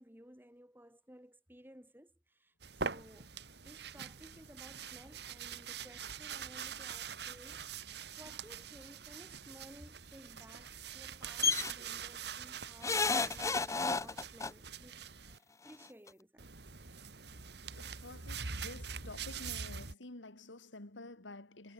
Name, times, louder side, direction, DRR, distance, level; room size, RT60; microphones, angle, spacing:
voice 1, 0.0-3.3 3.6-7.6 8.2-15.0 15.3-16.5, equal, 10° right, 7.6 m, -57 dB
sound 1, 2.6-15.4 16.4-19.9, right 6 dB, 60° right, 2.1 m, -44 dB
sound 2, 11.4-11.7 12.8-14.5 15.7-15.8 16.1-16.2, left 4 dB, 15° left, 0.6 m, -31 dB
voice 2, 17.8-21.7, left 2 dB, 85° left, 2.5 m, -50 dB
head